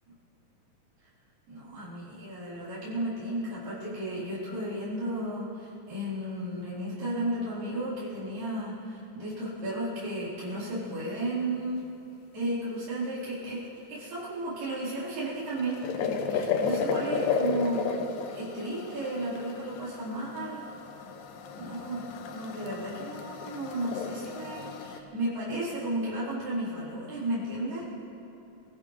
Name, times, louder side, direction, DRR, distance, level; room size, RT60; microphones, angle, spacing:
voice 1, 1.5-11.8 12.3-13.6 13.9-18.0 18.3-20.7 21.5-22.0 22.3-27.8, right 1 dB, 75° right, -10 dB, 6.0 m, -33 dB
sound 1, 15.2-25.0, left 6 dB, 85° left, 2.5 m, -33 dB
25.5 x 15.0 x 3.3 m, 2.8 s
omnidirectional pair, 3.9 m